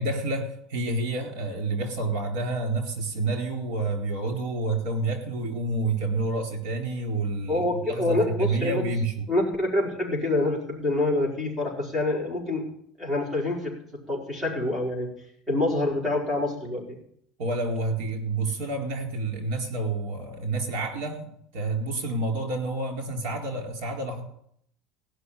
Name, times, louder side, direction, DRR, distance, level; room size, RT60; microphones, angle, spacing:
voice 1, 0.0-9.3 17.4-24.2, right 2 dB, 65° right, 3 dB, 4.2 m, -29 dB
voice 2, 7.5-8.8 9.3-12.6 13.0-13.7 14.1-15.1 15.5-17.0, left 2 dB, 5° right, -4 dB, 4.7 m, -26 dB
17.0 x 6.3 x 9.9 m, 0.70 s
cardioid pair, 170°, 0 cm